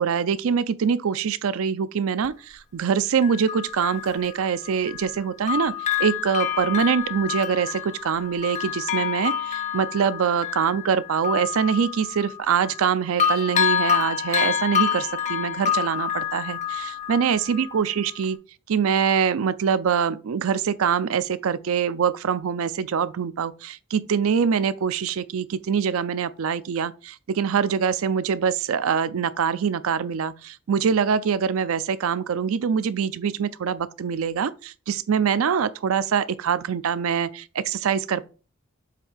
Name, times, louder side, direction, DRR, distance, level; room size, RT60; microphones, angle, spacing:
voice 1, 0.0-18.4 18.7-38.3, right 7 dB, 75° right, 0.4 m, -24 dB
Bell, 2.2-2.3 3.2-5.2 5.5-12.9 13.2-17.8 18.2-18.3, left 8 dB, 35° left, 0.6 m, -27 dB
7.5 x 2.7 x 4.9 m
head